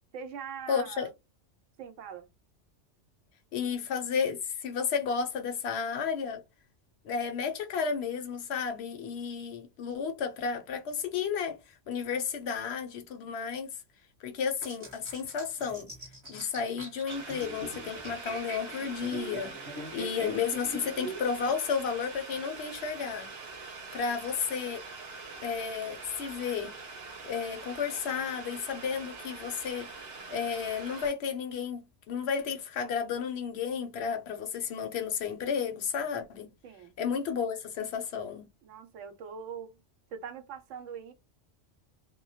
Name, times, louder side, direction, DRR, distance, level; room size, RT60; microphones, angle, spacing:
voice 1, 0.1-1.1 1.8-2.3 36.6-37.0 38.6-39.8 40.1-41.1, right 7 dB, 85° right, 0.9 m, -42 dB
voice 2, 0.7-1.1 3.5-6.4 7.0-13.7 14.2-15.9 16.3-19.5 19.9-23.3 23.9-24.8 25.4-26.7 27.2-29.9 30.3-36.5 37.0-38.4, left 6 dB, 70° left, 0.8 m, -32 dB
sound 1, 14.6-21.6, right 2 dB, 30° right, 0.7 m, -43 dB
Boiling, 17.1-31.1, right 4 dB, 60° right, 0.9 m, -44 dB
2.2 x 2.1 x 2.7 m
omnidirectional pair, 1.2 m